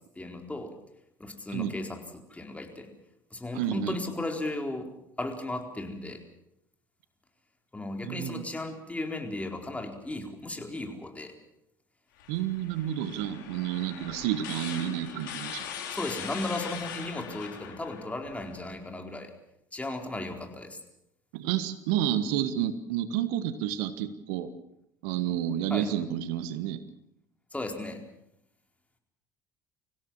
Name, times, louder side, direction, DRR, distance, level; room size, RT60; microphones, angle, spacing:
voice 1, 0.2-0.7 1.2-2.9 3.3-4.9 5.2-6.2 7.7-11.3 15.9-19.3 19.7-20.8 25.7-25.9 27.5-28.0, left 2 dB, 15° left, 3 dB, 4.3 m, -35 dB
voice 2, 3.5-4.0 8.0-8.4 12.3-15.6 21.3-24.5 25.0-26.8, right 11 dB, 70° right, 12 dB, 1.5 m, -30 dB
sound 1, 12.2-18.7, left 8 dB, 75° left, 3.5 m, -41 dB
25.5 x 16.5 x 7.4 m, 0.81 s
hypercardioid pair, 65°, 10 cm